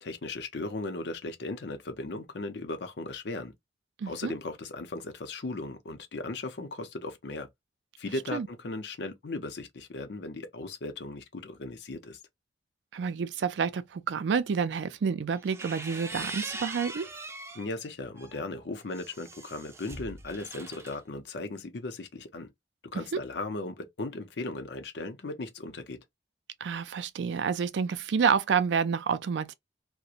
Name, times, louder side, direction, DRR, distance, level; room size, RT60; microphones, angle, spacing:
voice 1, 0.0-3.5 4.0-7.5 8.0-12.2 17.5-22.5 22.9-26.0, left 2 dB, 75° left, 0.6 m, -37 dB
voice 2, 4.0-4.3 8.3-8.5 12.9-17.1 22.9-23.2 26.6-29.5, right 6 dB, 85° right, 0.4 m, -29 dB
sound 1, 15.3-17.7 18.2-21.0, right 2 dB, 15° right, 0.4 m, -41 dB
2.4 x 2.1 x 2.8 m
head